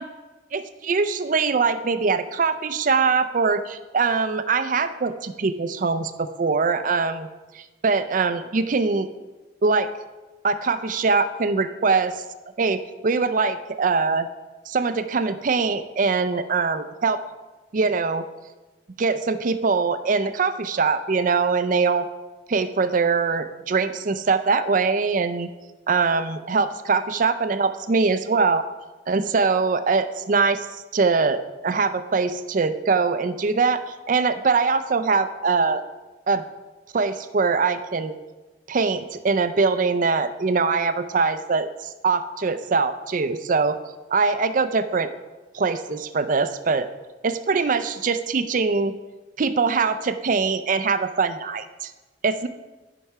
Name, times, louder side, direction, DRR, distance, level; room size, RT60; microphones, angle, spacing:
voice 1, 0.5-7.3 7.5-9.1 9.6-9.9 10.4-12.1 12.6-14.3 14.7-17.2 17.7-18.3 19.0-22.1 22.5-25.5 25.9-28.7 29.1-30.7 30.9-35.8 36.3-36.4 36.9-38.1 38.7-41.7 42.0-43.8 44.1-45.1 45.5-46.9 47.2-48.9 49.4-51.9 52.2-52.5, right 4 dB, 40° right, 10 dB, 0.4 m, -22 dB
11.0 x 5.6 x 4.7 m, 1.2 s
head